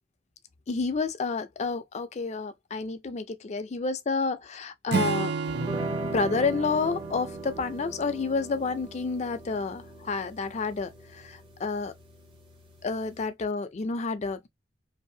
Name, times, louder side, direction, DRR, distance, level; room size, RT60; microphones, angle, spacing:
voice 1, 0.7-5.3 6.1-11.9 12.8-14.5, left 4 dB, 40° left, 0.4 m, -30 dB
Acoustic guitar / Strum, 4.9-8.4, right 5 dB, 60° right, 0.4 m, -33 dB
sound 1, 5.5-13.2, right 2 dB, 30° right, 0.7 m, -39 dB
2.7 x 2.4 x 2.6 m
head